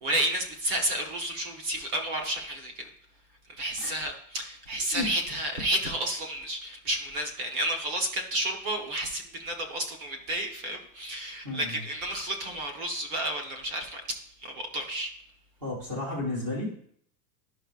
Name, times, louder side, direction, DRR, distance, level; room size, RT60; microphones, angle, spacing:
voice 1, 0.0-2.9 3.6-15.1, right 1 dB, 35° right, 3 dB, 1.1 m, -31 dB
voice 2, 11.4-11.8 15.6-16.8, left 2 dB, 10° right, -3 dB, 0.4 m, -32 dB
11.0 x 5.6 x 2.4 m, 0.63 s
supercardioid pair, 175°, 50 cm